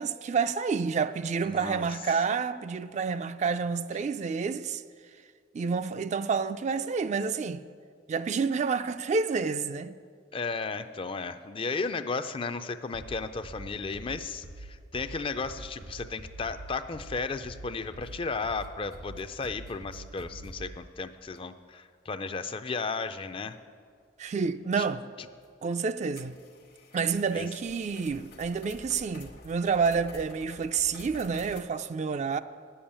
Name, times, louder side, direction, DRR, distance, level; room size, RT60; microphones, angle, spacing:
voice 1, 0.0-4.8 5.5-7.6 8.1-10.0 24.2-25.0 25.6-26.4 26.9-32.4, right 5 dB, 40° right, 0.3 m, -29 dB
voice 2, 1.4-1.9 10.3-23.6 27.3-27.5, left 4 dB, 30° left, 0.4 m, -34 dB
sound 1, 12.9-20.8, right 2 dB, 85° right, 1.6 m, -45 dB
sound 2, 18.0-18.3 18.6-20.5 21.4-21.5 22.1-22.2 23.5-23.6 25.4-25.5 26.1-31.6, left 3 dB, 60° left, 1.1 m, -50 dB
10.5 x 7.1 x 8.7 m
head